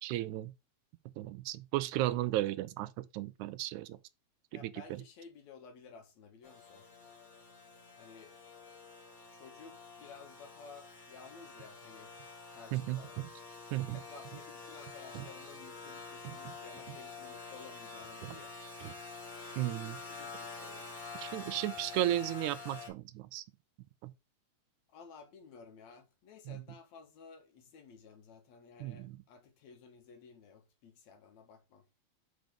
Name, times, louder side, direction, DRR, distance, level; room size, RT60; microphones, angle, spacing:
voice 1, 0.0-0.5 1.2-4.0 4.5-5.0 12.7-13.3 13.7-14.0 15.2-15.3 16.2-16.6 16.9-17.0 18.2-18.4 18.8-18.9 19.6-20.0 21.2-23.4 24.0-24.1 26.5-26.6 28.8-29.2, right 14 dB, 85° right, 2.0 m, -35 dB
voice 2, 4.5-6.9 8.0-8.3 9.3-12.1 12.5-13.2 13.9-18.6 20.0-21.1 24.9-31.8, left 5 dB, 70° left, 2.6 m, -54 dB
sound 1, 6.4-22.9, left 4 dB, 30° left, 2.2 m, -48 dB
5.6 x 4.0 x 5.1 m
omnidirectional pair, 3.4 m